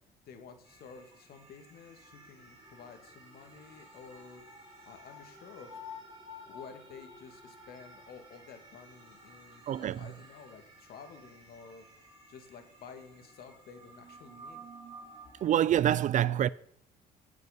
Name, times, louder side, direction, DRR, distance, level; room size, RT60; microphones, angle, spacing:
voice 1, 0.3-4.4 4.8-5.7 6.5-14.6, left 6 dB, 65° left, 2.3 m, -51 dB
sound 1, 0.6-15.6, left 1 dB, 30° right, 5.4 m, -52 dB
voice 2, 9.7-10.1 15.4-16.5, right 11 dB, 45° right, 0.4 m, -26 dB
17.0 x 6.8 x 5.2 m
cardioid pair, 110°, 17 cm